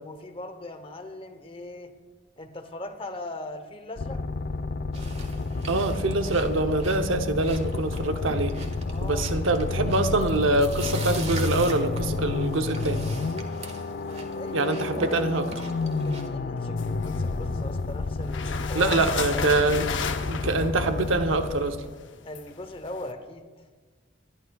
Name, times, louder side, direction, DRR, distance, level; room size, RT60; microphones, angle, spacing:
voice 1, 0.0-1.9 2.4-4.2 8.9-9.4 13.8-14.7 16.0-18.9 22.2-23.5, left 1 dB, 30° left, 8 dB, 0.9 m, -39 dB
sound 1, 4.0-22.0, left 3 dB, 45° left, 0.4 m, -30 dB
sound 2, 4.9-16.3, right 3 dB, 35° right, 1.5 m, -42 dB
voice 2, 5.7-8.6 9.0-13.1 14.5-15.5 18.7-19.9 20.3-21.8, right 2 dB, 85° right, 7 dB, 0.8 m, -25 dB
sound 3, 16.8-17.8 18.2-23.1, left 5 dB, 65° left, 0.8 m, -35 dB
25.5 x 11.5 x 2.3 m, 1.4 s
head